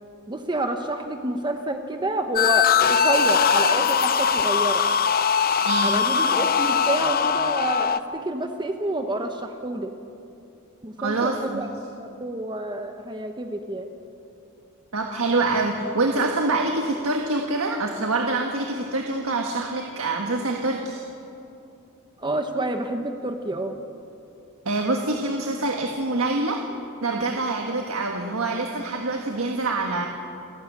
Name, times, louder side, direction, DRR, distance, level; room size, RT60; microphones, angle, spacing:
voice 1, 0.3-4.8 5.8-9.9 10.8-11.7 12.0-13.9 22.2-23.7, right 1 dB, 20° right, 5 dB, 0.9 m, -28 dB
sound 1, 2.4-8.0, left 6 dB, 45° left, 0.6 m, -21 dB
voice 2, 5.6-6.0 11.0-11.7 14.9-21.0 24.6-26.6 27.0-30.1, right 2 dB, 70° right, 2 dB, 1.6 m, -25 dB
28.5 x 12.0 x 8.6 m, 2.7 s
head